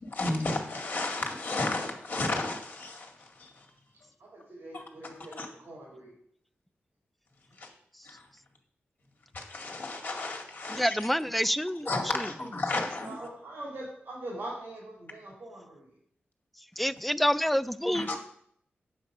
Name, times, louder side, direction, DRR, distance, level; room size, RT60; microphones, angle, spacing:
voice 1, 0.0-3.7 4.7-4.8 5.4-5.5 7.6-7.7 8.0-8.3 9.3-11.0 11.9-13.3 17.9-18.2, left 2 dB, 50° left, 2 dB, 2.2 m, -33 dB
voice 2, 4.2-6.1 13.0-15.8, right 1 dB, 60° right, -4 dB, 3.1 m, -42 dB
voice 3, 10.7-12.3 12.8-12.9 16.8-18.2, equal, ahead, 13 dB, 0.3 m, -28 dB
8.6 x 7.3 x 5.4 m, 0.65 s
wide cardioid pair, 150°, 4 cm